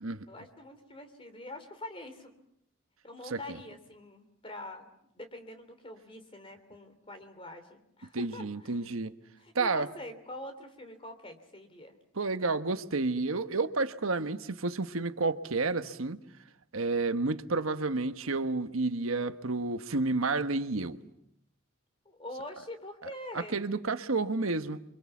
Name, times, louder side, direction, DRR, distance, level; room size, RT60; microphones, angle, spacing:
voice 1, 0.3-2.3 3.0-4.9 5.1-8.8 9.4-12.0 22.0-23.6, left 1 dB, 25° left, 3.1 m, -45 dB
voice 2, 3.3-3.6 8.1-9.1 9.5-9.9 12.2-16.2 16.7-21.0 23.3-24.8, right 3 dB, 90° right, 1.2 m, -30 dB
29.0 x 24.5 x 7.2 m
head